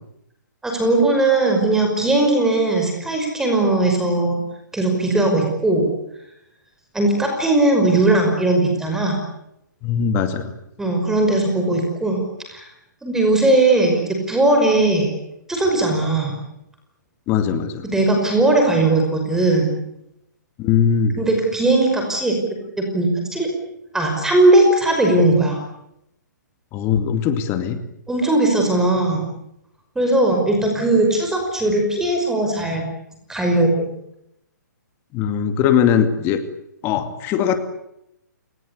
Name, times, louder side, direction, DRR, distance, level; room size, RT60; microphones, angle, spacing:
voice 1, 0.6-4.4 4.7-5.8 6.9-9.2 10.8-12.2 12.5-12.7 13.0-15.1 15.5-16.3 17.8-19.7 21.2-22.3 22.8-23.5 23.9-25.6 28.1-29.2 30.0-32.8 33.3-33.9, right 2 dB, 5° right, 2 dB, 5.6 m, -18 dB
voice 2, 9.8-10.5 17.3-17.8 20.6-21.2 26.7-27.8 35.1-36.4 36.8-37.6, left 8 dB, 25° left, 9 dB, 2.3 m, -20 dB
29.0 x 20.0 x 8.5 m, 0.79 s
hypercardioid pair, 150°, 10 cm